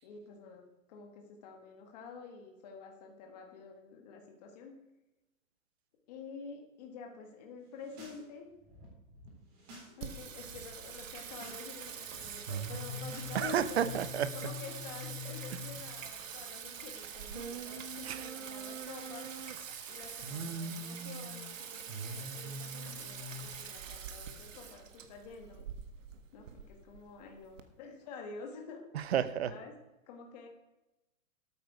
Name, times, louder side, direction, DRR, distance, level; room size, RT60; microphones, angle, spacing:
voice 1, 0.0-4.7 6.1-8.5 10.0-13.8 14.3-19.3 19.9-25.6 26.3-28.8 29.5-29.7 30.1-30.5, left 5 dB, 30° left, 2 dB, 1.7 m, -49 dB
sound 1, 7.7-8.2 8.5-9.9 10.2-10.6 11.1-11.6 11.9-14.0, right 1 dB, 30° right, 3.9 m, -54 dB
Singing, 10.0-27.6, right 4 dB, 65° right, 1.6 m, -42 dB
voice 2, 13.3-14.3 18.0-18.3 28.9-29.5, right 9 dB, 50° right, 15 dB, 0.8 m, -31 dB
13.5 x 8.7 x 4.8 m, 1.0 s
hypercardioid pair, 170°, 41 cm